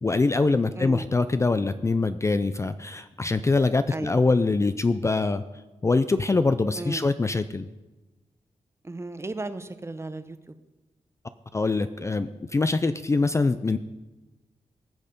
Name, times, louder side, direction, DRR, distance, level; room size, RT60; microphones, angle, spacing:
voice 1, 0.0-5.4 5.8-7.7 11.5-13.8, left 3 dB, 25° left, 11 dB, 0.4 m, -24 dB
voice 2, 0.8-1.1 3.9-4.2 6.8-7.1 8.8-10.5, right 2 dB, 20° right, 11 dB, 0.7 m, -35 dB
19.0 x 6.5 x 5.2 m, 1.1 s
wide cardioid pair, 100°, 13 cm